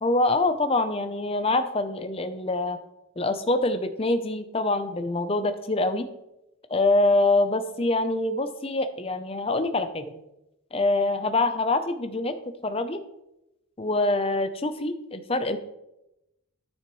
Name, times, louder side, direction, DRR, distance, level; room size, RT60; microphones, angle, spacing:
voice 1, 0.0-2.8 3.2-6.1 6.7-10.2 10.7-12.4 12.6-13.0 13.8-15.6, left 2 dB, 30° left, 8 dB, 0.6 m, -25 dB
13.0 x 6.4 x 3.1 m, 0.89 s
head